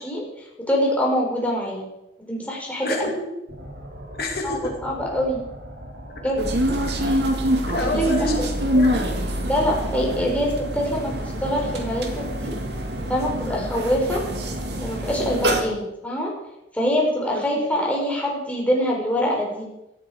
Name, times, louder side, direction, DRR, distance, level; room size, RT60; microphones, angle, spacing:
voice 1, 0.0-1.9 2.3-3.1 4.4-5.4 6.2-6.5 7.8-7.9 8.4-8.5 9.5-11.1 11.4-12.6 13.1-14.2 14.8-16.3 16.7-19.7, equal, 10° left, -2 dB, 4.3 m, -24 dB
voice 2, 2.8-3.3 4.2-4.7 6.2-6.3 6.8-7.0 7.7-9.1 17.3-17.4, left 1 dB, 60° left, 2 dB, 2.7 m, -28 dB
sound 1, 3.5-15.7, equal, 85° right, 4.0 m, -40 dB
sound 2, 6.4-15.6, equal, 70° right, 2.1 m, -25 dB
17.0 x 13.5 x 4.9 m, 0.88 s
head